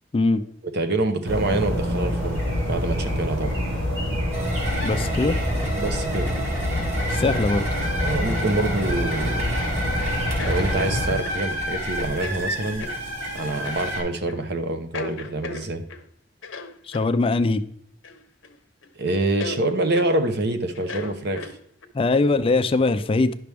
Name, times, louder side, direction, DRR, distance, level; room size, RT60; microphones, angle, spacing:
voice 1, 0.7-2.4 2.7-3.6 5.7-6.3 8.0-9.5 10.4-12.9 13.3-15.8 19.0-21.5, right 2 dB, 55° right, 7 dB, 0.8 m, -26 dB
sound 1, 1.2-11.1, equal, 80° right, 2.7 m, -26 dB
sound 2, 4.3-14.0, equal, 35° right, 2.8 m, -30 dB
voice 2, 4.8-5.4 7.1-7.7 16.9-17.6 21.9-23.3, left 3 dB, 30° left, 12 dB, 0.3 m, -21 dB
sound 3, 9.2-9.8 10.4-11.4 12.1-12.4 12.8-13.0 13.6-13.8 14.3-14.5 14.9-16.0 16.4-17.1 18.0-18.6 18.8-18.9 19.4-19.6 19.9-20.1 20.7-21.9, left 3 dB, 70° left, 0.8 m, -36 dB
10.5 x 5.9 x 3.4 m, 0.67 s
head